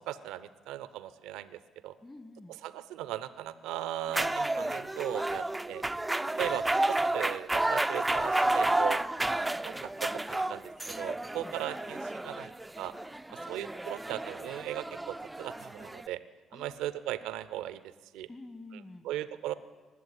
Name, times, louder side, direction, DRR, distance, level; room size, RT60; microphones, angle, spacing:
voice 1, 0.0-1.9 2.6-5.8 6.4-9.0 9.6-12.9 13.5-16.2 16.5-17.8 18.1-18.3 19.0-19.5, right 13 dB, 70° right, 15 dB, 0.6 m, -38 dB
voice 2, 2.0-2.6 11.3-11.5 13.3-13.6 16.5-17.0 18.3-19.1, left 2 dB, 25° left, 12 dB, 1.4 m, -49 dB
sound 1, 4.1-16.1, right 2 dB, 15° right, 0.4 m, -31 dB
19.5 x 7.8 x 9.3 m, 1.4 s
hypercardioid pair, 45°, 0 cm